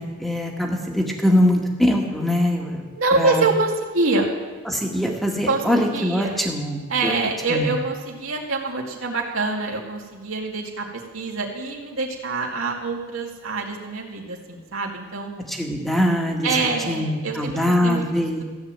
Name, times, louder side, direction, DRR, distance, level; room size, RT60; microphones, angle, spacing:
voice 1, 0.0-2.8 3.2-3.4 4.7-7.2 7.5-7.7 15.5-16.5 16.9-18.4, left 1 dB, ahead, 0 dB, 1.9 m, -22 dB
voice 2, 2.9-4.3 5.5-6.4 6.9-10.9 11.1-15.3 16.4-18.4, right 3 dB, 85° right, -1 dB, 2.4 m, -25 dB
15.0 x 9.4 x 7.7 m, 1.3 s
head